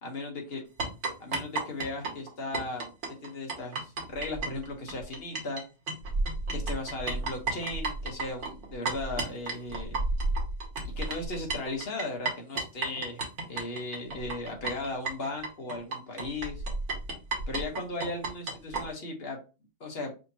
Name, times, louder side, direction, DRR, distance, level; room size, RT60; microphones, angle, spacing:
voice 1, 0.0-0.6 1.2-2.9 3.2-5.6 6.5-10.0 10.8-13.2 13.5-16.6 17.5-19.4 19.8-20.1, left 2 dB, 45° left, 1 dB, 1.2 m, -36 dB
sound 1, 0.8-5.6 5.9-18.8, right 3 dB, 55° right, 1.2 m, -32 dB
5.2 x 2.9 x 2.8 m, 0.31 s
omnidirectional pair, 1.6 m